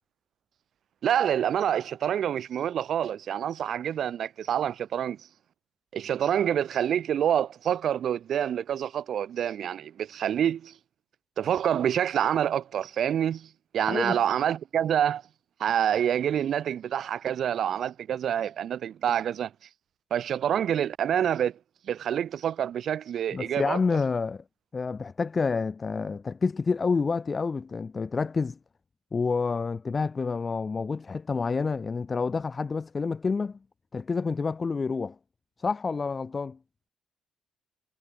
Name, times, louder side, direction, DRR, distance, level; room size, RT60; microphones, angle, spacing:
voice 1, 1.0-5.2 5.9-10.7 11.4-15.2 15.6-19.5 20.1-21.6 21.9-23.8, right 9 dB, 65° right, 1.7 m, -27 dB
voice 2, 23.3-24.4 24.7-28.6 29.1-33.6 33.9-35.2 35.6-36.6, left 4 dB, 35° left, 0.7 m, -28 dB
cardioid pair, 90°, 0 cm